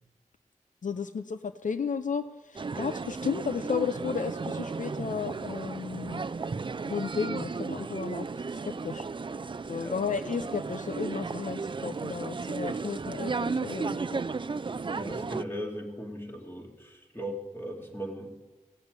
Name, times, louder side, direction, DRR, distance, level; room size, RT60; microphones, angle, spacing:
voice 1, 0.8-6.2 6.8-8.3 8.8-9.1 9.7-14.2, left 6 dB, 70° left, 10 dB, 0.6 m, -33 dB
sound 1, 2.6-15.4, right 4 dB, 40° right, 0.4 m, -34 dB
voice 2, 9.8-10.1 14.9-18.3, equal, 15° left, 0 dB, 3.0 m, -38 dB
16.5 x 6.7 x 9.6 m, 1.3 s
wide cardioid pair, 75°, 14 cm